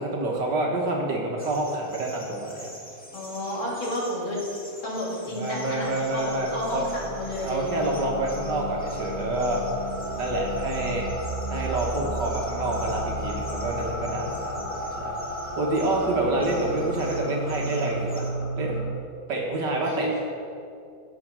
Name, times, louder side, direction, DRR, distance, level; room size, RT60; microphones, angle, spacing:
voice 1, 0.0-2.7 5.4-6.9 7.4-9.6 10.2-11.0 11.5-15.2 15.6-18.3 18.6-18.8 19.3-20.2, right 2 dB, 60° right, -1 dB, 1.9 m, -27 dB
sound 1, 1.4-18.3, equal, 5° left, 0.8 m, -46 dB
voice 2, 3.1-4.5 4.8-7.9 16.0-16.2 19.8-20.2, left 1 dB, 75° left, -5 dB, 3.7 m, -31 dB
sound 2, 5.4-18.9, right 1 dB, 60° left, 2.6 m, -33 dB
15.5 x 5.3 x 6.1 m, 2.4 s
omnidirectional pair, 2.2 m